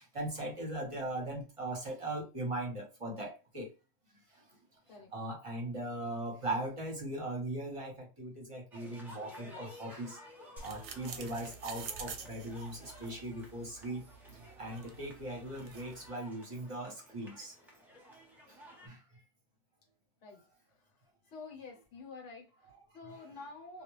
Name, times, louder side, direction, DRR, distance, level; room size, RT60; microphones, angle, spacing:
voice 1, 0.0-3.7 4.3-4.4 4.9-10.2 10.6-14.1 14.3-17.5 18.5-18.6 18.8-19.0 23.1-23.2, right 1 dB, 30° right, 0.8 m, -39 dB
sound 1, 8.7-18.9, equal, ahead, 0.5 m, -54 dB
sound 2, 10.6-16.1, right 6 dB, 70° right, 0.8 m, -48 dB
voice 2, 21.3-23.8, left 4 dB, 65° left, 1.2 m, -48 dB
2.4 x 2.3 x 3.0 m
omnidirectional pair, 1.3 m